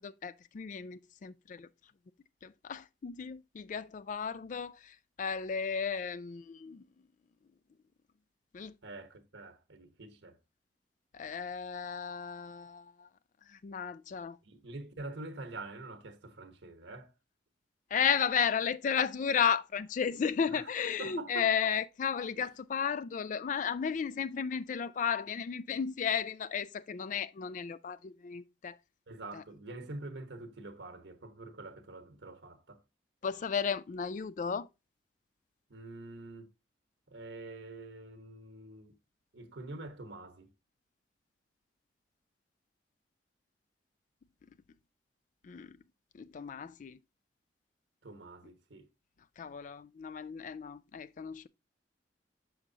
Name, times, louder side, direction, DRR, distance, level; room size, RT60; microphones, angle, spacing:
voice 1, 0.0-1.7 2.4-6.8 8.5-8.7 11.1-13.1 13.6-14.4 17.9-28.8 29.3-29.4 33.2-34.7 45.4-45.8 46.1-47.0 49.4-51.5, left 7 dB, 45° left, 0.3 m, -34 dB
voice 2, 8.8-10.4 14.4-17.1 20.5-20.7 21.0-21.5 22.3-22.5 29.1-32.8 35.7-36.5 37.1-38.9 39.3-40.5 48.0-48.9, right 2 dB, 90° right, 1.1 m, -46 dB
6.5 x 6.1 x 2.7 m
head